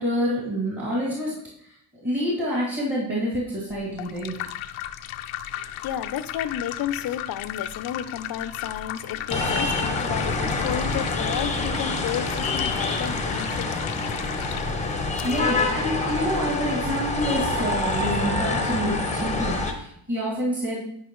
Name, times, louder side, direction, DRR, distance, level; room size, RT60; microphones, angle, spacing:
voice 1, 0.0-1.7 2.0-4.4 15.2-20.8, equal, 25° right, 2.3 m, -27 dB
sound 1, 3.7-15.4, left 12 dB, 90° left, 0.6 m, -36 dB
voice 2, 5.5-14.4, left 9 dB, 45° left, 0.5 m, -32 dB
sound 2, 9.3-19.7, left 2 dB, 15° left, 0.8 m, -26 dB
9.9 x 5.4 x 3.0 m
cardioid pair, 145°, 49 cm